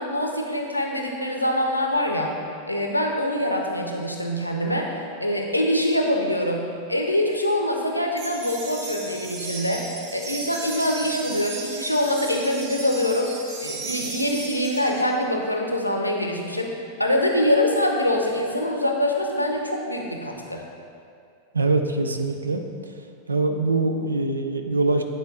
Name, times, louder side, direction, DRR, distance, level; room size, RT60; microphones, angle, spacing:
voice 1, 0.0-2.3 2.7-9.8 10.1-13.3 13.6-20.6, left 1 dB, 90° left, 1 dB, 0.7 m, -24 dB
sound 1, 8.2-15.0, right 3 dB, 45° right, 1.0 m, -35 dB
voice 2, 21.5-22.9 23.3-25.0, right 3 dB, 75° right, 6 dB, 0.5 m, -23 dB
9.6 x 4.3 x 4.1 m, 2.4 s
figure-of-eight pair, 90°, 0 cm